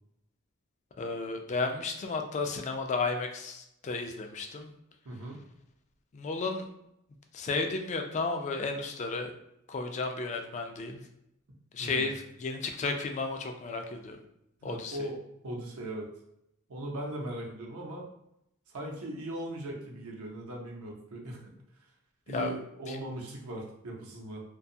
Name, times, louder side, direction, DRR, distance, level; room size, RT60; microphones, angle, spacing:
voice 1, 1.0-4.7 6.1-6.7 7.3-9.3 9.7-11.0 11.7-14.2 14.6-15.1 22.3-22.5 22.9-23.0, left 3 dB, 35° left, 5 dB, 0.3 m, -33 dB
voice 2, 5.0-5.4 11.8-12.0 14.6-15.2 15.4-16.1 16.7-18.0 18.7-21.4 22.3-24.4, right 1 dB, 85° right, -1 dB, 0.6 m, -39 dB
2.5 x 2.2 x 2.6 m, 0.80 s
head